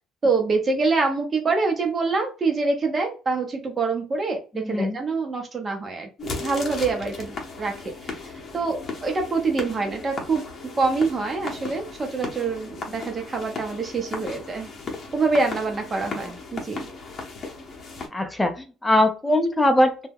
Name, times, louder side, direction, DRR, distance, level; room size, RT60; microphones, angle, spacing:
voice 1, 0.2-8.1 8.5-10.4 10.8-14.7 15.1-16.9, right 4 dB, 30° right, 3 dB, 0.8 m, -25 dB
voice 2, 4.5-5.0 16.2-16.3 18.1-20.1, left 1 dB, 10° left, 6 dB, 0.6 m, -21 dB
sound 1, 6.2-18.1, left 3 dB, 40° left, 0.8 m, -36 dB
2.2 x 2.1 x 3.4 m, 0.34 s
cardioid pair, 115°, 0 cm